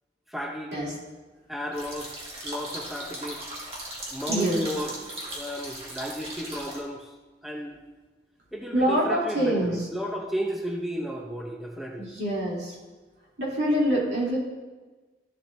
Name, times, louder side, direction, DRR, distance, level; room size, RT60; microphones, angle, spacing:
voice 1, 0.3-0.7 1.5-3.4 4.1-4.9 5.3-7.1 7.4-7.8 8.5-12.1, equal, ahead, 0 dB, 0.6 m, -34 dB
sound 1, 1.7-6.8, right 1 dB, 35° right, 1.9 m, -37 dB
voice 2, 4.3-4.7 8.7-9.9 12.0-12.8 13.4-14.4, right 1 dB, 75° right, -5 dB, 2.9 m, -25 dB
13.0 x 7.5 x 2.6 m, 1.3 s
head